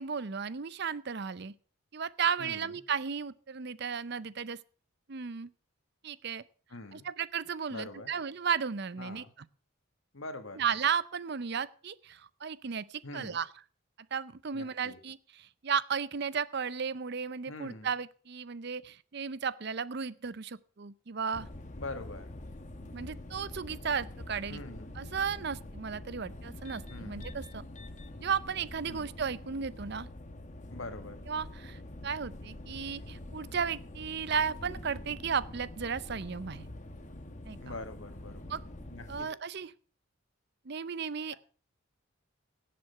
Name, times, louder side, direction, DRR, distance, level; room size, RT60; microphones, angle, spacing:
voice 1, 0.0-1.5 1.9-4.6 5.1-5.5 6.0-6.4 6.9-9.2 10.6-13.5 14.1-21.5 22.9-24.6 25.0-27.6 28.2-30.1 31.3-36.6 37.4-37.7 38.5-38.6 39.1-39.7 40.7-41.3, right 6 dB, 50° right, 18 dB, 0.6 m, -34 dB
voice 2, 2.4-2.7 6.7-7.1 7.7-8.1 9.0-9.3 10.1-10.6 13.0-13.4 14.5-15.0 17.5-17.9 21.8-22.3 24.5-24.9 26.9-27.3 28.9-29.2 30.7-31.2 37.6-38.5 38.9-39.3, left 2 dB, 70° left, 9 dB, 1.6 m, -44 dB
sound 1, 21.3-39.2, left 1 dB, 35° left, 1.0 m, -45 dB
17.0 x 7.7 x 5.6 m, 0.41 s
head